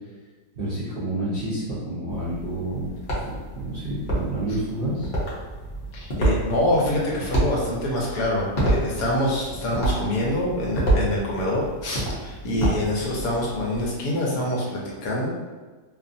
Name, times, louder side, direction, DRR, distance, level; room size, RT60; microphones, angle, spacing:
voice 1, 0.6-2.9 3.1-5.1, right 1 dB, 60° right, -11 dB, 0.6 m, -29 dB
sound 1, 2.1-13.9, right 1 dB, 50° left, 0.6 m, -28 dB
voice 2, 5.9-15.3, left 1 dB, 70° left, -3 dB, 1.0 m, -25 dB
2.8 x 2.4 x 2.5 m, 1.4 s
omnidirectional pair, 1.8 m